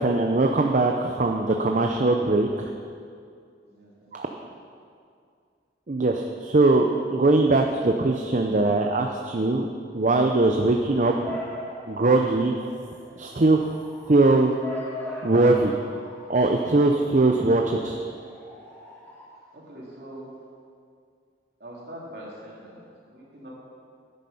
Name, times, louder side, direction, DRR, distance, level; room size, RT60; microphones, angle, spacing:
voice 1, 0.0-2.7 4.1-4.3 5.9-9.7 9.9-11.4 11.9-12.5 13.2-13.6 14.1-14.5 15.2-15.7 16.3-18.0, right 2 dB, 45° right, 3 dB, 0.6 m, -21 dB
voice 2, 3.7-4.4 19.5-20.4 21.6-23.5, right 1 dB, 65° right, -5 dB, 3.2 m, -43 dB
Bark / Motor vehicle (road) / Siren, 10.5-19.2, left 1 dB, 10° left, 2.3 m, -40 dB
11.0 x 9.9 x 5.6 m, 2.3 s
head